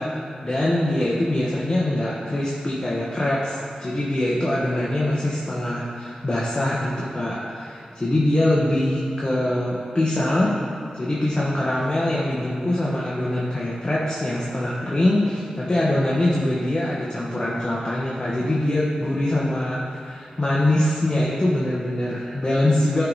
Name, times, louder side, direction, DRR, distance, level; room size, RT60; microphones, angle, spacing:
voice 1, 0.0-10.6 10.9-23.0, left 1 dB, 30° left, -6 dB, 1.2 m, -23 dB
12.5 x 4.7 x 4.1 m, 2.6 s
wide cardioid pair, 90°, 3 cm